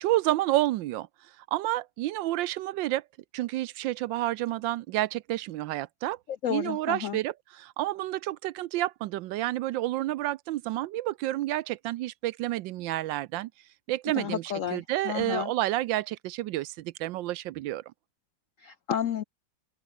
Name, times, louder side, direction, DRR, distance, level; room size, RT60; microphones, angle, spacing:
voice 1, 0.0-3.0 3.3-6.2 6.5-13.5 13.9-17.8, right 15 dB, 75° right, 1.2 m, -30 dB
voice 2, 6.4-7.2 14.2-15.5 18.6-19.2, left 9 dB, 70° left, 0.7 m, -31 dB
open air
omnidirectional pair, 2.2 m